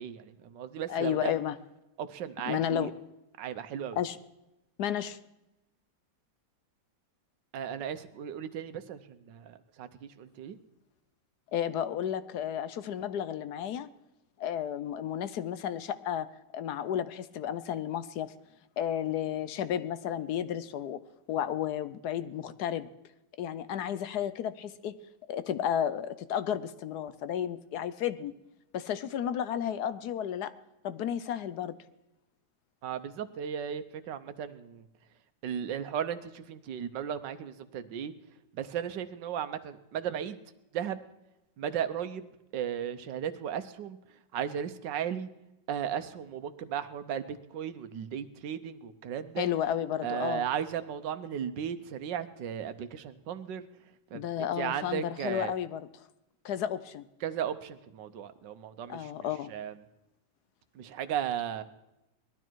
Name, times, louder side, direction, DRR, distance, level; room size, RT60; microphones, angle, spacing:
voice 1, 0.0-1.3 2.0-2.9 3.4-4.0 7.5-10.6 32.8-34.9 35.4-38.1 38.5-40.4 40.7-41.0 41.6-42.2 42.5-45.3 45.7-49.5 50.0-53.7 54.1-54.2 54.6-55.5 57.2-59.7 60.7-61.6, right 9 dB, 85° right, 11 dB, 1.5 m, -36 dB
voice 2, 0.9-1.5 2.5-2.9 4.0-4.2 4.8-5.2 11.5-13.9 14.4-16.3 16.5-18.3 18.8-21.0 21.3-22.9 23.4-25.0 25.3-28.3 28.7-30.5 30.8-31.8 49.4-50.4 54.1-55.9 56.4-57.0 58.9-59.5, left 10 dB, 70° left, 14 dB, 1.2 m, -32 dB
19.5 x 12.5 x 4.6 m, 0.93 s
omnidirectional pair, 1.9 m